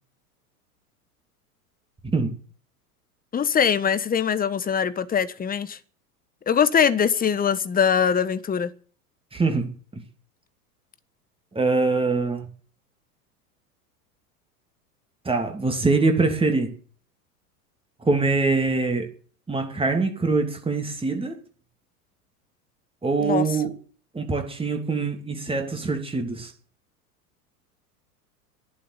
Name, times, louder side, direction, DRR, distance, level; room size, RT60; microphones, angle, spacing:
voice 1, 2.0-2.4 9.3-10.0 11.5-12.5 15.2-16.7 18.0-19.1 19.5-21.4 23.0-23.7 24.1-26.5, right 3 dB, 10° right, 2.9 m, -24 dB
voice 2, 3.3-5.8 6.5-8.7 23.2-23.4, left 7 dB, 20° left, 1.3 m, -22 dB
12.5 x 11.0 x 9.4 m
hypercardioid pair, 90°, 46 cm